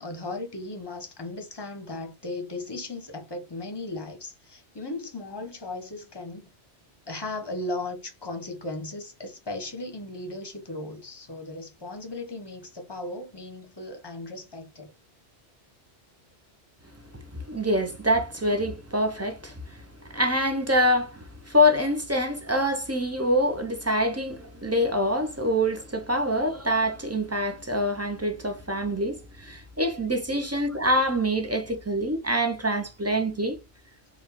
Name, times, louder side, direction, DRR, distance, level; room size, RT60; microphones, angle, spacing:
voice 1, 0.0-6.5 7.1-14.9, left 2 dB, 25° left, 0.9 m, -36 dB
voice 2, 17.3-19.5 20.0-33.6, equal, 20° right, 0.4 m, -25 dB
4.6 x 2.3 x 3.6 m
omnidirectional pair, 1.2 m